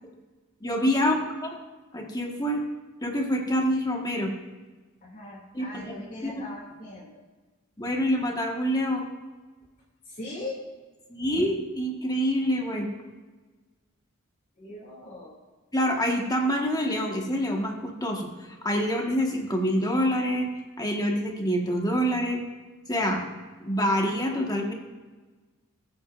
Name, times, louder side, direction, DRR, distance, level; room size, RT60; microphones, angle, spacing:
voice 1, 0.6-1.2 1.4-1.6 1.9-2.6 3.0-4.3 5.5-5.9 6.2-6.3 7.8-9.1 11.1-12.9 15.7-20.5 20.8-22.4 22.9-23.3 23.6-24.7, equal, 20° left, 1 dB, 1.6 m, -26 dB
voice 2, 5.0-7.2 10.1-10.7 11.2-11.4 14.6-15.4, left 2 dB, 40° left, -5 dB, 2.7 m, -40 dB
20.0 x 8.7 x 2.6 m, 1.3 s
head